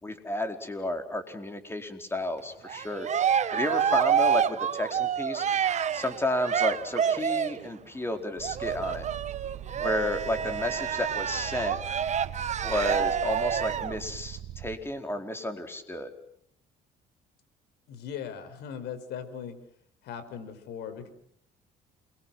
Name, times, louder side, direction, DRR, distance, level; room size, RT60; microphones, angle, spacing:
voice 1, 0.0-3.1 3.5-5.4 5.9-9.1 9.8-11.8 12.6-16.1, left 1 dB, 15° left, 6 dB, 4.6 m, -32 dB
Cheering, 2.7-7.7 8.4-14.0, right 8 dB, 45° right, 1.2 m, -28 dB
sound 1, 8.4-14.8, right 11 dB, 70° right, 2.3 m, -42 dB
voice 2, 17.9-19.6 20.0-21.1, left 8 dB, 80° left, 11 dB, 5.5 m, -39 dB
29.0 x 23.0 x 7.9 m, 0.69 s
cardioid pair, 110°, 17 cm